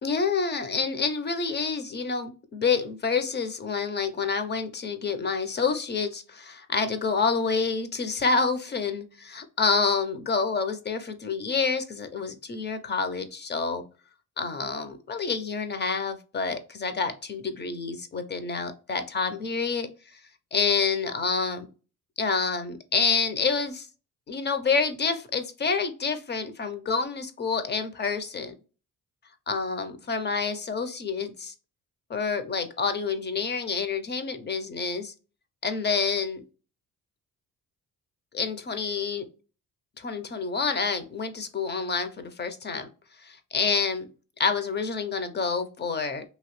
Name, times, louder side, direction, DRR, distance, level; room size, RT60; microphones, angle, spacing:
voice 1, 0.0-13.8 14.4-20.2 20.5-21.7 22.2-23.9 24.3-28.5 29.5-31.5 32.1-35.1 35.6-36.4 38.3-39.3 40.0-42.9 43.2-44.1 44.4-46.2, left 5 dB, 30° left, 9 dB, 0.6 m, -28 dB
2.9 x 2.6 x 3.0 m, 0.35 s
cardioid pair, 95°, 34 cm